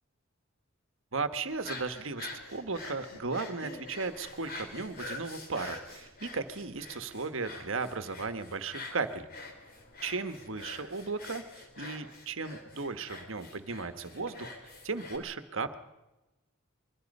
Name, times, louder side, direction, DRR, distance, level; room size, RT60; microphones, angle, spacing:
voice 1, 1.1-9.3 10.0-14.5 14.8-15.8, right 4 dB, 65° right, 10 dB, 1.4 m, -36 dB
sound 1, 1.5-15.2, left 2 dB, 45° left, 3.8 m, -46 dB
26.0 x 22.5 x 5.4 m, 1.0 s
head